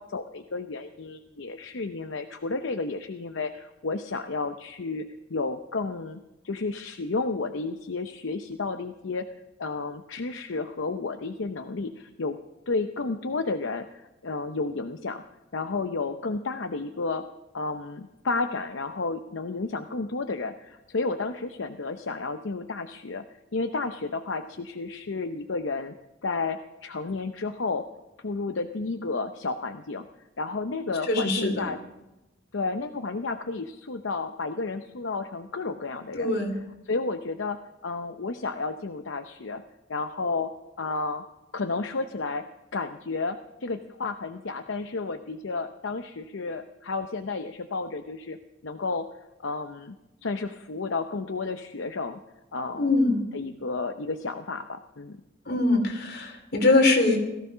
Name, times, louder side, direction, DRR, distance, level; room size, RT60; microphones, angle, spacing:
voice 1, 0.0-12.4 12.7-15.2 15.5-17.3 17.5-23.3 23.5-26.0 26.2-27.9 28.2-30.1 30.4-31.8 32.5-36.3 36.9-39.6 39.9-41.2 41.5-42.5 42.7-49.1 49.4-52.2 52.5-52.9 53.3-55.2, left 3 dB, 75° left, 7 dB, 0.8 m, -32 dB
voice 2, 31.1-31.6 36.1-36.5 52.8-53.2 55.5-57.2, left 2 dB, 55° left, 3 dB, 3.1 m, -22 dB
17.5 x 15.0 x 5.6 m, 0.98 s
head